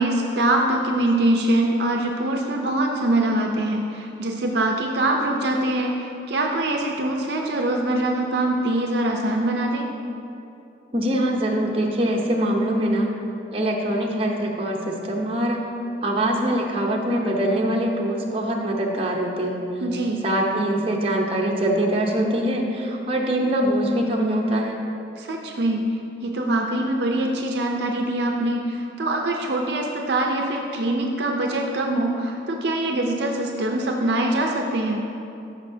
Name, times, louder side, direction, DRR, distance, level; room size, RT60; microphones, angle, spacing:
voice 1, 0.0-9.9 19.8-20.2 25.2-25.8 26.2-35.0, right 1 dB, 60° right, 1 dB, 0.5 m, -23 dB
voice 2, 10.9-13.1 13.5-15.6 16.0-19.6 20.2-24.8, right 1 dB, 30° right, -1 dB, 0.8 m, -23 dB
13.5 x 5.6 x 2.7 m, 2.7 s
head